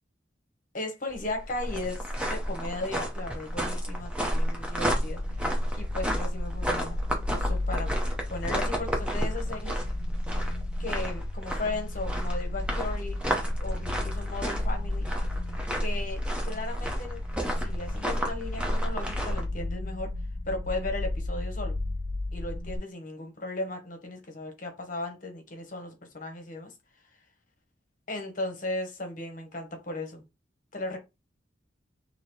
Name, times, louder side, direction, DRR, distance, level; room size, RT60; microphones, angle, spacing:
voice 1, 0.7-5.2 5.8-7.0 7.3-7.9 8.3-9.8 10.8-13.2 13.6-15.1 15.8-17.2 17.6-20.1 20.5-21.8 22.3-26.7 28.1-30.2 30.7-31.0, left 2 dB, 40° left, 1.0 m, -36 dB
sound 1, 1.1-19.4, equal, 5° right, 0.7 m, -31 dB
sound 2, 5.0-22.8, left 2 dB, 25° left, 0.4 m, -34 dB
3.0 x 2.8 x 4.4 m
head